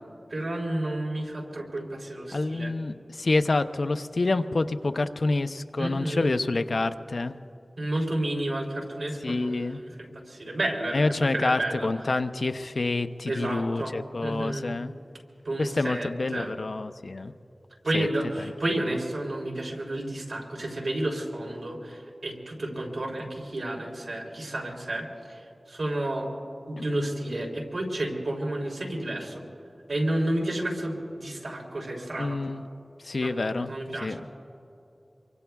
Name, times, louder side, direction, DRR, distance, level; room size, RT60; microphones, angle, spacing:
voice 1, 0.3-2.7 5.8-6.4 7.8-11.9 13.3-13.9 14.2-14.6 15.4-16.5 17.8-26.3 26.7-29.4 29.9-32.4 33.2-34.2, right 1 dB, 85° right, -1 dB, 3.3 m, -31 dB
voice 2, 2.3-7.4 9.2-9.8 10.9-14.9 15.6-17.3 17.9-18.1 26.8-26.9 32.2-32.6 33.0-33.7 34.0-34.2, left 2 dB, 70° left, 9 dB, 0.6 m, -27 dB
26.0 x 24.0 x 2.3 m, 2.8 s
wide cardioid pair, 75°, 0 cm